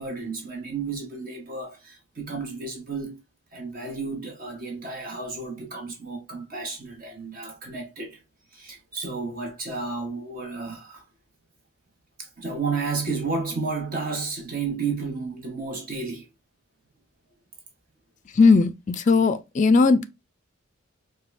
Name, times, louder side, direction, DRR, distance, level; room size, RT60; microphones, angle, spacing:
voice 1, 0.0-3.2 3.5-8.2 8.5-11.0 12.2-16.3, right 4 dB, 45° right, 0.9 m, -32 dB
voice 2, 18.4-20.1, left 4 dB, 35° left, 0.3 m, -18 dB
5.0 x 2.2 x 2.5 m
head